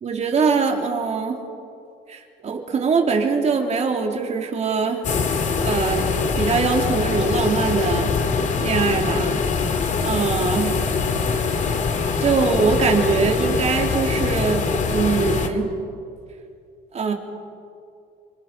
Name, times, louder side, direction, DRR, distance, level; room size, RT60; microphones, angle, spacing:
voice 1, 0.0-1.4 2.1-5.0 5.6-6.1 6.4-8.1 8.6-9.4 10.0-10.8 12.2-15.7 16.9-17.1, right 5 dB, 40° right, 2 dB, 3.3 m, -22 dB
sound 1, 5.0-15.5, left 5 dB, 45° left, 2.2 m, -23 dB
27.5 x 25.5 x 5.7 m, 2.4 s
cardioid pair, 110°, 17 cm